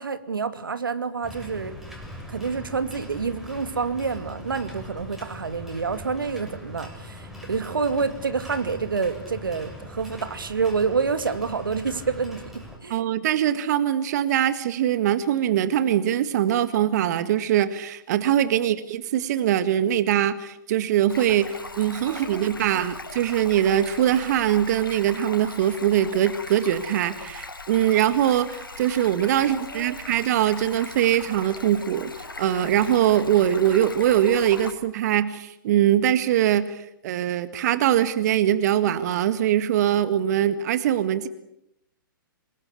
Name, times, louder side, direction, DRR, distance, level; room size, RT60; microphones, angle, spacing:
voice 1, 0.0-1.8 2.3-13.0 18.6-18.7 22.1-22.9 29.4-30.0, right 5 dB, 75° right, 10 dB, 2.5 m, -28 dB
sound 1, 1.2-12.8, left 1 dB, ahead, 7.4 m, -41 dB
voice 2, 12.9-41.3, right 11 dB, 50° right, 12 dB, 1.8 m, -22 dB
Stream, 21.1-34.7, left 3 dB, 85° left, 3.8 m, -39 dB
27.5 x 22.5 x 8.4 m, 0.80 s
figure-of-eight pair, 115°, 11 cm